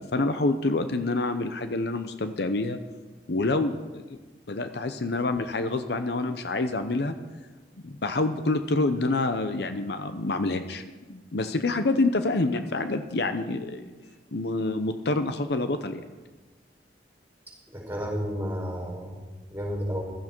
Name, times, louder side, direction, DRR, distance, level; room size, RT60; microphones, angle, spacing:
voice 1, 0.0-2.8 3.3-4.2 4.5-7.2 7.8-10.8 11.1-13.9 14.3-16.0, left 2 dB, 65° left, 9 dB, 0.7 m, -27 dB
voice 2, 17.7-19.2 19.5-20.0, equal, 10° right, -1 dB, 5.0 m, -31 dB
15.5 x 13.0 x 4.5 m, 1.3 s
head